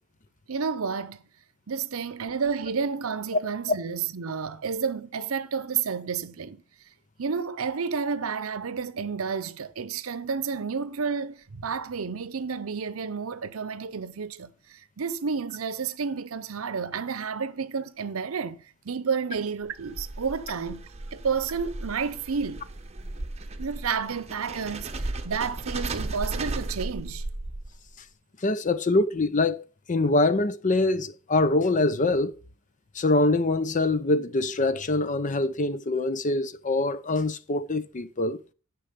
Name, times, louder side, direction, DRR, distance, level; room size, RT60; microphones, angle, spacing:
voice 1, 0.5-1.2 1.7-6.6 7.2-18.6 18.8-22.6 23.6-27.2, right 5 dB, 75° right, 0.7 m, -31 dB
sound 1, 19.6-27.9, right 2 dB, 30° right, 0.9 m, -35 dB
voice 2, 28.4-32.3 32.9-38.4, left 2 dB, 35° left, 0.6 m, -24 dB
10.0 x 6.1 x 5.3 m
head